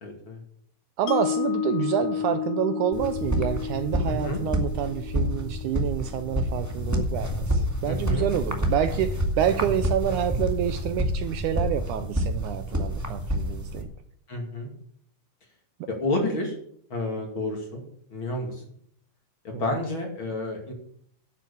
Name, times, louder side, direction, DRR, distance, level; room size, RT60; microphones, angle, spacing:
voice 1, 0.0-0.4 2.2-2.3 4.0-4.4 7.9-8.3 9.6-9.7 14.3-14.7 15.9-16.6 16.9-17.8 18.1-18.6 19.4-20.7, left 2 dB, 40° left, 2 dB, 2.8 m, -30 dB
voice 2, 1.0-13.9 19.5-19.6, right 10 dB, 80° right, 10 dB, 1.9 m, -28 dB
Mallet percussion, 1.1-7.2, left 9 dB, 85° left, 2.4 m, -32 dB
sound 1, 2.9-13.8, equal, 10° right, 1.1 m, -28 dB
11.0 x 8.1 x 7.1 m, 0.65 s
omnidirectional pair, 4.0 m